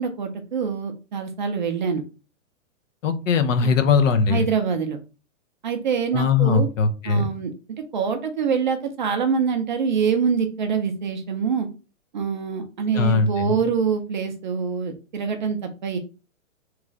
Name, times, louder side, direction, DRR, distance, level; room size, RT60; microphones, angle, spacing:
voice 1, 0.0-2.0 3.6-3.7 4.3-5.0 5.6-6.7 7.1-7.5 7.9-11.7 12.1-16.0, right 6 dB, 40° right, 5 dB, 0.4 m, -25 dB
voice 2, 3.0-4.5 6.1-7.3 12.9-13.6, left 5 dB, 70° left, 9 dB, 0.7 m, -20 dB
3.1 x 2.4 x 3.7 m, 0.32 s
hypercardioid pair, 160°, 40 cm